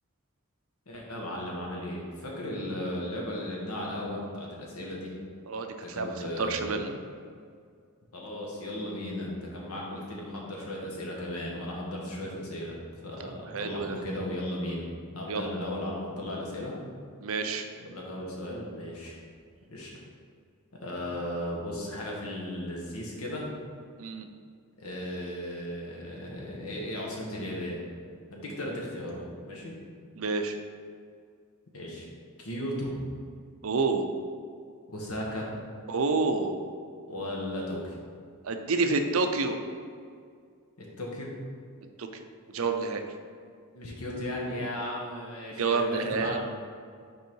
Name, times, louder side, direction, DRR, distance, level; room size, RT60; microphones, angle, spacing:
voice 1, 0.9-5.1 5.8-6.7 8.1-14.8 15.1-16.7 17.8-19.2 19.7-19.9 20.7-23.5 24.8-27.8 28.3-29.7 31.7-32.1 32.4-33.1 34.9-35.5 37.1-38.0 40.8-41.3 43.7-46.4, left 1 dB, 85° left, -3 dB, 1.4 m, -36 dB
voice 2, 5.5-6.9 13.2-14.0 15.3-15.7 17.2-17.7 24.0-24.3 30.2-30.6 33.6-34.1 35.9-36.6 38.4-39.6 42.0-42.1 42.5-43.0 45.6-46.4, right 4 dB, 70° right, 6 dB, 0.5 m, -29 dB
5.5 x 4.7 x 4.6 m, 2.2 s
head